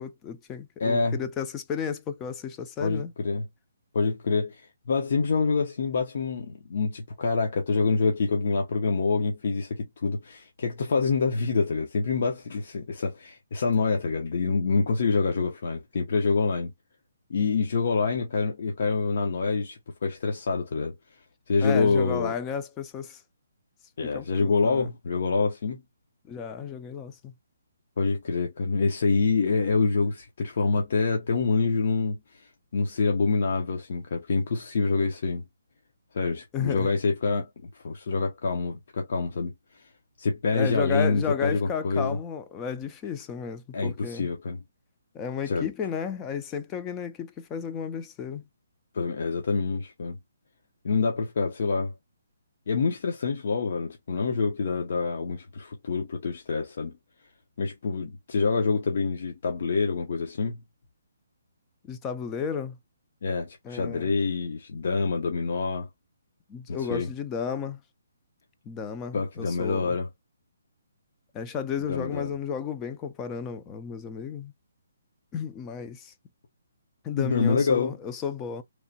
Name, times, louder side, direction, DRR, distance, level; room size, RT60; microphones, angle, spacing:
voice 1, 0.0-3.1 21.6-23.2 24.0-24.9 26.3-27.3 36.5-36.9 40.5-44.3 45.1-48.5 61.9-62.8 63.6-64.1 66.5-67.8 68.7-70.0 71.3-74.5 75.3-76.1 77.0-78.6, left 7 dB, 15° left, 0.3 m, -33 dB
voice 2, 0.8-1.2 2.8-3.4 3.9-16.7 17.3-20.9 21.5-22.3 24.0-25.8 28.0-35.4 36.1-37.5 37.8-39.5 40.2-42.2 43.7-44.6 45.5-45.7 48.9-50.2 50.8-51.9 52.7-57.0 57.6-60.6 63.2-65.9 66.7-67.1 69.1-70.1 71.9-72.3 77.2-78.0, left 4 dB, 55° left, 0.6 m, -26 dB
3.0 x 2.1 x 2.6 m
hypercardioid pair, 165°, 0 cm